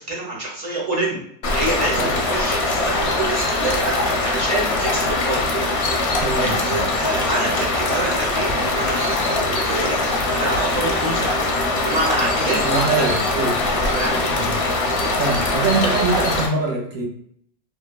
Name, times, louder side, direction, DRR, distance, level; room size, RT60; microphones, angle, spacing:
voice 1, 0.1-1.2 1.5-5.4 5.7-11.3 11.8-13.1 13.7-14.3, right 2 dB, 40° right, -3 dB, 0.7 m, -27 dB
sound 1, 1.4-16.5, left 2 dB, 65° left, 0.8 m, -22 dB
voice 2, 6.2-6.8 12.6-13.6 14.3-14.6 15.1-17.1, right 3 dB, 85° right, -1 dB, 1.2 m, -23 dB
3.0 x 2.2 x 2.2 m, 0.69 s
omnidirectional pair, 1.2 m